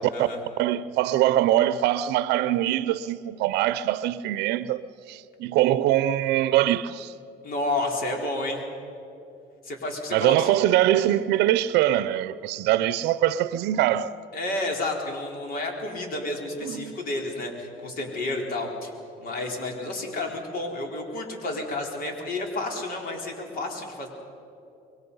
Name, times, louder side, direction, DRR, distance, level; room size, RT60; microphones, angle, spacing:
voice 1, 0.6-4.8 5.1-7.1 10.1-14.2 16.6-16.9, right 13 dB, 85° right, 0.6 m, -23 dB
voice 2, 7.4-8.6 9.6-10.5 10.9-11.0 14.3-18.9 19.2-24.1, left 2 dB, 60° left, 4.3 m, -31 dB
25.5 x 22.0 x 5.5 m
cardioid pair, 110°, 17 cm